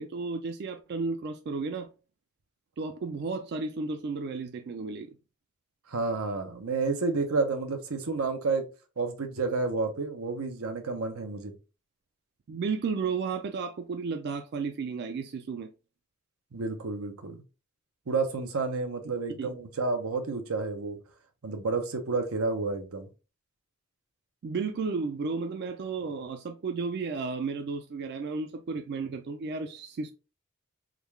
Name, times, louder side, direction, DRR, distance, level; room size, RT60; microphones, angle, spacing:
voice 1, 0.0-1.9 2.8-5.1 12.5-15.7 19.1-19.5 24.4-30.1, right 4 dB, 50° right, 0.4 m, -33 dB
voice 2, 5.9-8.7 9.0-11.5 16.5-17.4 18.1-21.0 21.4-23.1, right 3 dB, 90° right, 0.7 m, -30 dB
3.7 x 2.3 x 3.1 m
head